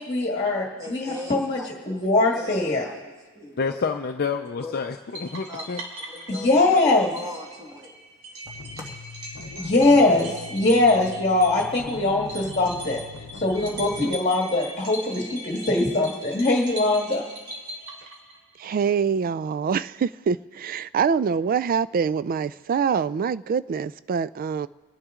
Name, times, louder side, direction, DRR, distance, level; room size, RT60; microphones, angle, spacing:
voice 1, 0.0-2.9 6.3-7.1 9.6-13.0 13.3-17.2, left 2 dB, 30° left, 1.7 m, -22 dB
voice 2, 0.8-3.7 4.6-4.8 5.5-5.6 6.1-8.0 8.8-8.9, left 2 dB, 15° right, 2.5 m, -40 dB
voice 3, 3.6-5.8, left 5 dB, 45° left, 0.5 m, -28 dB
sound 1, 5.1-18.6, right 1 dB, 75° right, 2.9 m, -40 dB
sound 2, 8.5-14.2, left 4 dB, 80° left, 0.7 m, -41 dB
voice 4, 18.6-24.7, right 6 dB, 40° right, 0.3 m, -25 dB
25.0 x 9.8 x 3.7 m
head